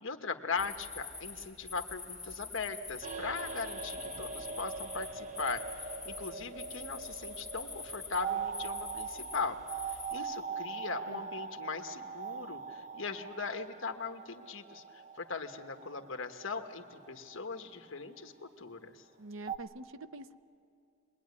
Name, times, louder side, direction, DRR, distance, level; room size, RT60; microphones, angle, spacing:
voice 1, 0.0-5.6 6.0-9.6 9.9-19.0, left 4 dB, 55° left, 6 dB, 1.4 m, -39 dB
sound 1, 0.6-10.1, left 4 dB, ahead, 3.8 m, -46 dB
sound 2, 3.0-18.1 19.5-19.6, right 5 dB, 35° right, 0.9 m, -42 dB
voice 2, 19.2-20.3, right 2 dB, 60° right, 12 dB, 0.7 m, -45 dB
25.0 x 21.0 x 9.7 m, 2.5 s
head